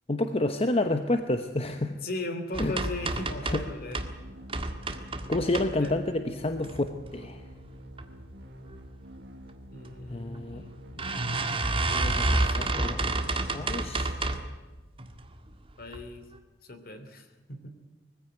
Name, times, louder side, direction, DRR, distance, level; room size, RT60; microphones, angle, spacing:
voice 1, 0.1-2.0 2.6-2.8 3.5-3.6 5.3-6.8 7.1-7.4 10.1-10.6 11.0-11.4 11.9-14.1, left 2 dB, 35° left, 7 dB, 1.0 m, -29 dB
voice 2, 1.6-4.0 5.8-5.9 9.7-10.8 12.1-12.8 15.8-16.3 16.6-17.7, left 2 dB, 55° left, 8 dB, 2.9 m, -38 dB
sound 1, 2.5-4.1 4.5-6.1 6.6-7.2 7.6-8.1 8.3-8.4 8.7-8.8 9.8-10.0 10.3-10.4 11.0-14.5 15.0-15.4 15.9-16.0 16.3-16.4, right 2 dB, 30° right, 1.7 m, -30 dB
sound 2, 2.9-14.8, equal, 70° right, 2.2 m, -48 dB
21.0 x 15.5 x 9.0 m, 1.2 s
head